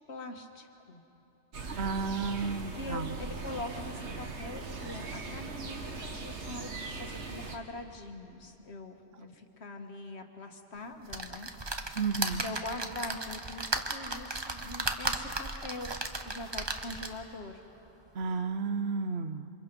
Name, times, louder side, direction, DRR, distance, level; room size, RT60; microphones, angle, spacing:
voice 1, 0.1-1.0 2.8-11.5 12.4-15.9 16.2-17.6, left 2 dB, 70° left, 4 dB, 1.8 m, -43 dB
sound 1, 1.5-7.6, right 3 dB, 85° right, 1.8 m, -40 dB
voice 2, 1.8-3.1 11.9-12.4 18.1-19.5, right 4 dB, 70° right, 10 dB, 1.1 m, -32 dB
sound 2, 11.1-17.3 17.9-18.0 18.2-18.3, right 2 dB, 25° right, 1.0 m, -35 dB
28.0 x 25.0 x 5.4 m, 3.0 s
omnidirectional pair, 1.1 m